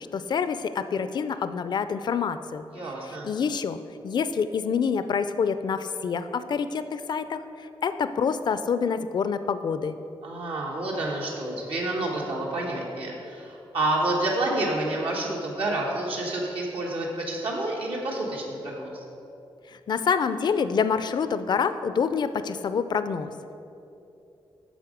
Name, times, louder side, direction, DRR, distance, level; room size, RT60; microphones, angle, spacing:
voice 1, 0.1-2.6 3.1-10.0 19.7-23.3, left 6 dB, 50° left, 11 dB, 0.4 m, -27 dB
voice 2, 2.7-3.3 10.2-19.0, right 2 dB, 85° right, -3 dB, 1.3 m, -29 dB
9.2 x 6.4 x 5.0 m, 2.8 s
wide cardioid pair, 115°, 9 cm